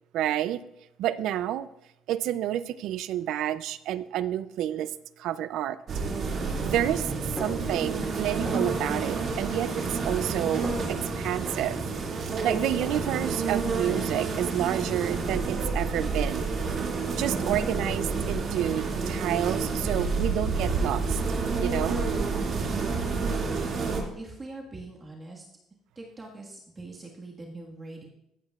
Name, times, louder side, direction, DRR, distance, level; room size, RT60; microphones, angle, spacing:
voice 1, 0.1-0.6 1.0-1.7 2.1-4.9 5.2-5.8 6.6-7.1 7.4-11.8 12.4-16.5 17.2-21.2 21.6-22.0, right 12 dB, 75° right, 15 dB, 0.4 m, -29 dB
sound 1, 5.9-24.0, right 4 dB, 50° right, 2.2 m, -29 dB
Snare drum, 7.4-8.2 8.5-9.0 9.5-10.3 10.6-11.0 11.5-13.6 13.9-14.4 14.9-15.6, equal, ahead, 2.2 m, -43 dB
voice 2, 23.3-23.7 24.1-25.5 25.9-28.0, right 2 dB, 25° right, -2 dB, 1.6 m, -43 dB
14.5 x 8.6 x 2.4 m, 0.84 s
cardioid pair, 110°, 0 cm